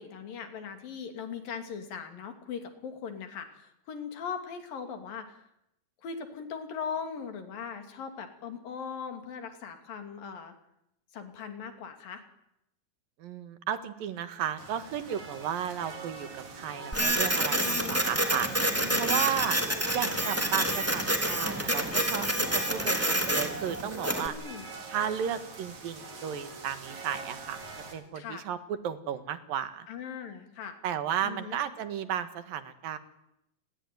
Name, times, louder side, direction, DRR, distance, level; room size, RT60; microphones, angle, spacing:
voice 1, 0.0-5.4 6.0-10.5 11.1-12.2 17.6-18.0 18.7-19.1 19.4-19.5 24.2-24.6 28.1-28.4 29.9-30.8 31.2-31.6, left 6 dB, 70° left, 7 dB, 4.6 m, -39 dB
voice 2, 13.2-18.5 19.0-19.6 19.9-24.4 24.9-27.6 27.9-29.9 30.8-33.0, right 9 dB, 75° right, 11 dB, 3.3 m, -34 dB
sound 1, 14.6-27.9, right 4 dB, 50° right, 5.1 m, -44 dB
Printer, 16.9-24.3, right 1 dB, 5° right, 2.9 m, -28 dB
29.5 x 21.5 x 9.4 m, 0.81 s
omnidirectional pair, 4.1 m